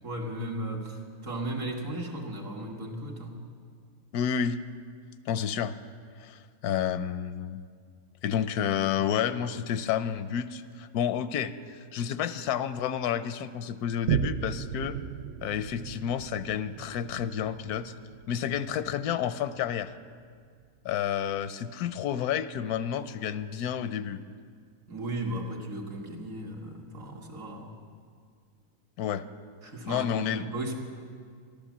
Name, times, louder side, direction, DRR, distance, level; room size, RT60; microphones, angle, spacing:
voice 1, 0.0-3.4 24.9-27.8 29.6-30.8, right 1 dB, 55° right, 0 dB, 1.9 m, -36 dB
voice 2, 4.1-4.6 5.3-5.7 6.2-7.6 8.2-15.0 15.4-17.9 18.3-19.9 20.8-24.2 29.0-29.2 29.9-30.4, left 9 dB, 80° left, 13 dB, 1.1 m, -30 dB
Boom, 14.1-21.0 21.5-21.6, right 9 dB, 75° right, 0.6 m, -36 dB
14.0 x 12.0 x 7.2 m, 2.1 s
omnidirectional pair, 1.6 m